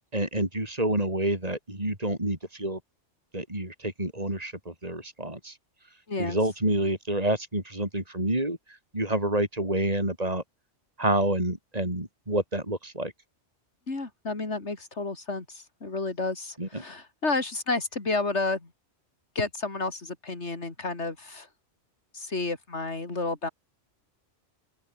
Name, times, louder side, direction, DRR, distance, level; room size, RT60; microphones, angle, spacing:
voice 1, 0.1-2.8 3.3-5.6 6.2-10.4 11.0-13.1 16.6-16.8, right 1 dB, 35° right, 5.9 m, -28 dB
voice 2, 13.9-18.7 19.3-21.5 22.1-23.5, left 3 dB, 75° left, 3.5 m, -31 dB
open air
omnidirectional pair, 1.2 m